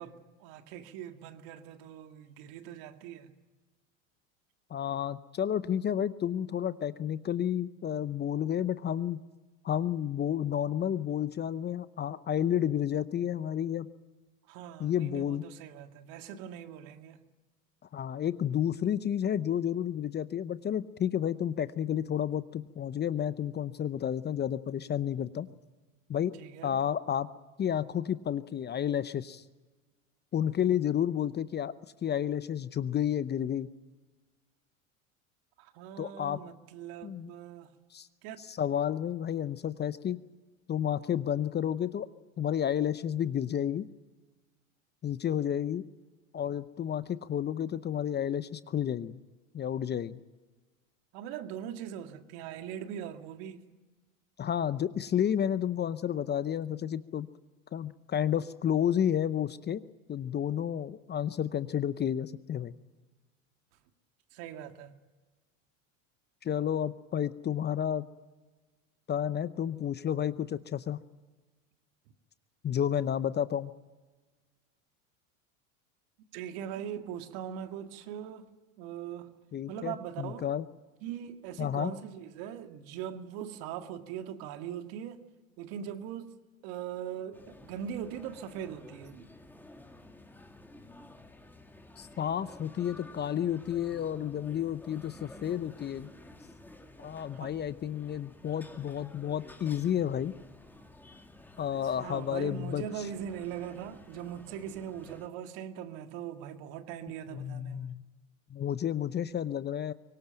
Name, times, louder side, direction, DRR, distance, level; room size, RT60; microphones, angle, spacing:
voice 1, 0.0-3.3 14.5-17.2 25.5-25.6 26.4-26.8 35.6-37.7 38.2-38.4 51.1-53.7 64.3-64.9 76.3-78.5 78.8-79.4 79.7-80.5 81.0-85.2 85.6-86.4 86.6-89.3 97.3-97.6 102.0-108.0, right 9 dB, 60° right, 2.1 m, -41 dB
voice 2, 4.7-9.2 9.6-13.9 14.8-15.4 17.9-25.5 26.1-26.3 26.6-27.3 27.6-29.4 30.3-31.7 32.0-33.7 36.0-36.4 37.0-37.3 37.9-38.1 38.5-40.2 40.7-42.1 42.4-43.9 45.0-45.8 46.3-49.2 49.5-50.2 54.4-57.3 57.7-59.8 60.1-62.7 66.4-68.1 69.1-71.0 72.6-73.7 79.5-80.6 81.6-81.9 92.0-96.1 97.0-100.3 101.6-102.8 107.3-108.0 108.5-109.9, left 9 dB, 25° left, 0.7 m, -31 dB
sound 1, 87.3-105.3, left 2 dB, 5° left, 2.1 m, -52 dB
24.0 x 18.5 x 9.0 m
hypercardioid pair, 100°, 40 cm